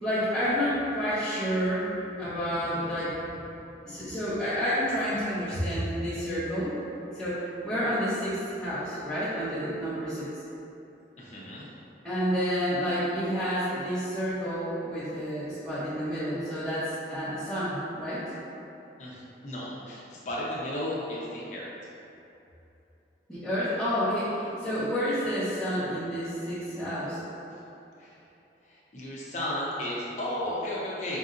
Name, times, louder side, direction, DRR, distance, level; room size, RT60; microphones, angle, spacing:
voice 1, 0.0-1.9 2.2-3.2 3.8-6.7 7.1-10.3 12.0-18.3 23.3-27.2, equal, ahead, -15 dB, 0.8 m, -29 dB
voice 2, 11.2-11.7 19.0-21.7 27.5-27.6 28.0-28.2 28.6-31.2, left 1 dB, 40° left, -6 dB, 0.7 m, -34 dB
5.3 x 2.6 x 2.5 m, 2.9 s
head